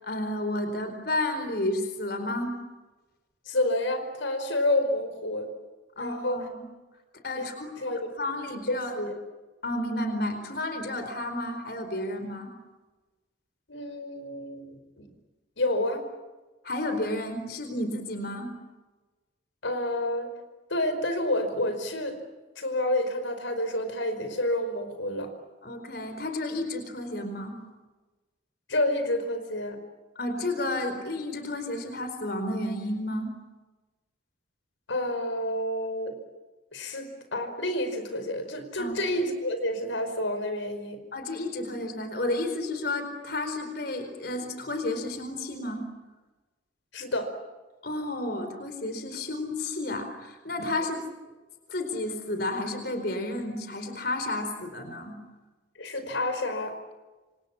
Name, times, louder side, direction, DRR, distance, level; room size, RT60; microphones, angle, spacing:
voice 1, 0.0-2.6 6.0-6.6 7.2-7.7 8.2-8.9 9.6-12.5 16.6-18.5 25.6-27.6 30.2-33.3 38.8-39.0 41.1-45.8 47.8-51.0 51.7-55.2, left 1 dB, 55° left, 7 dB, 4.5 m, -31 dB
voice 2, 3.5-5.5 6.0-6.4 7.3-7.5 7.8-8.1 8.7-9.1 13.7-15.1 15.6-16.0 19.6-20.3 20.7-22.2 22.6-25.3 28.7-29.8 34.9-36.2 36.7-41.0 46.9-47.3 55.8-56.7, left 1 dB, 85° left, 8 dB, 5.1 m, -29 dB
29.0 x 27.0 x 7.3 m, 1.2 s
head